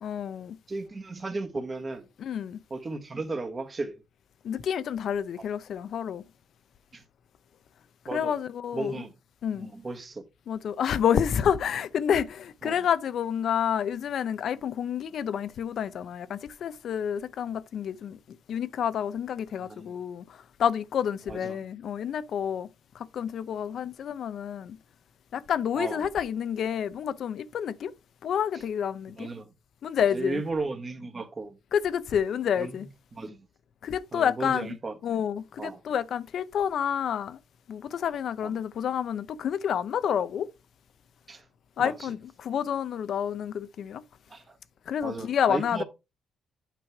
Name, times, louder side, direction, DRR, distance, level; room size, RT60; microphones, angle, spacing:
voice 1, 0.0-0.6 2.2-2.6 4.4-6.2 8.1-9.0 9.4-9.7 10.5-18.2 18.5-22.7 22.9-24.8 25.3-27.9 28.2-29.3 29.8-30.4 31.7-32.9 33.8-34.8 35.0-37.4 37.7-40.5 41.8-44.0 44.9-45.8, left 8 dB, 65° left, 0.6 m, -29 dB
voice 2, 0.7-2.1 2.7-4.0 6.9-7.0 8.1-8.3 8.7-9.1 9.5-10.2 12.6-12.7 19.6-19.9 21.3-21.6 25.7-26.0 29.2-29.5 30.1-31.6 32.6-32.9 33.1-33.4 34.1-34.9 35.6-35.8 38.4-38.5 41.3-41.4 41.8-42.1 44.3-44.6 45.0-45.8, right 3 dB, 30° right, 1.5 m, -35 dB
9.0 x 3.1 x 5.9 m
cardioid pair, 90°, 0 cm